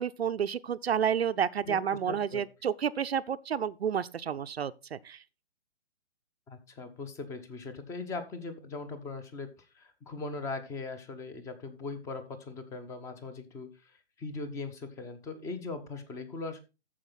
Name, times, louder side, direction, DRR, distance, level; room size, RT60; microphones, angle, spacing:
voice 1, 0.0-5.2, right 8 dB, 65° right, 0.6 m, -30 dB
voice 2, 1.6-2.4 6.5-16.6, left 3 dB, 10° left, 0.7 m, -40 dB
13.5 x 4.9 x 4.0 m
figure-of-eight pair, 130°, 35 cm